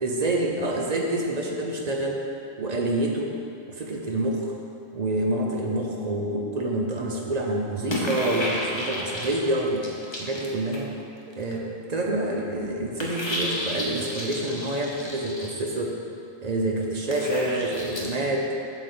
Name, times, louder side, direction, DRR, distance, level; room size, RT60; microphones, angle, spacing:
voice 1, 0.0-2.2 2.6-3.3 3.7-4.5 4.9-9.9 10.2-10.9 11.3-16.0 16.4-18.5, right 1 dB, 50° right, 0 dB, 0.5 m, -27 dB
sound 1, 7.9-11.0 11.3-11.5 13.0-15.5 17.1-18.1, left 1 dB, 25° left, 0.7 m, -32 dB
8.0 x 3.5 x 6.6 m, 2.6 s
omnidirectional pair, 1.5 m